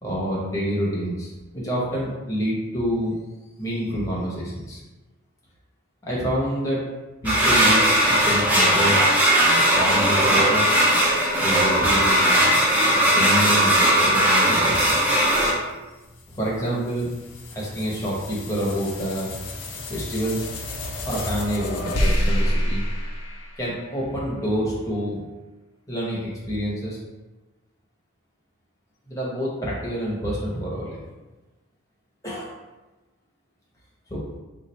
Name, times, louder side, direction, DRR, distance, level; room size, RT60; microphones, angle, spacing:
voice 1, 0.0-3.2 3.6-4.8 6.1-6.8 7.2-9.0 9.7-10.7 11.4-12.2 12.9-15.0 16.3-17.1 17.5-19.4 19.9-20.4 21.1-22.8 23.6-25.2 25.9-27.0 29.1-31.0 32.2-32.5 34.1-34.2, equal, 15° left, -6 dB, 0.9 m, -27 dB
sound 1, 7.2-15.5, right 1 dB, 5° right, 0.5 m, -18 dB
sound 2, 15.5-24.1, equal, 90° left, 0.6 m, -29 dB
4.0 x 2.4 x 3.1 m, 1.1 s
head